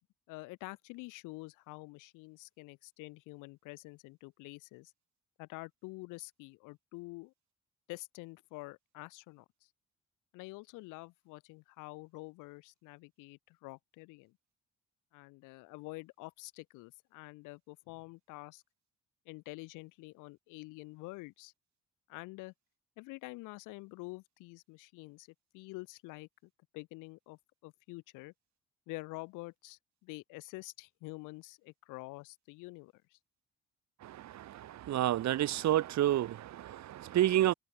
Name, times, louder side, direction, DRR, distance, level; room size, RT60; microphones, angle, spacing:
voice 1, 0.3-4.9 5.4-7.3 7.9-9.7 10.3-14.4 15.1-18.6 19.2-21.5 22.1-22.5 23.0-25.3 25.5-28.3 28.9-33.2, left 24 dB, 85° left, 4.5 m, -47 dB
voice 2, 34.9-37.5, right 13 dB, 65° right, 1.1 m, -29 dB
supercardioid pair, 55°, 30 cm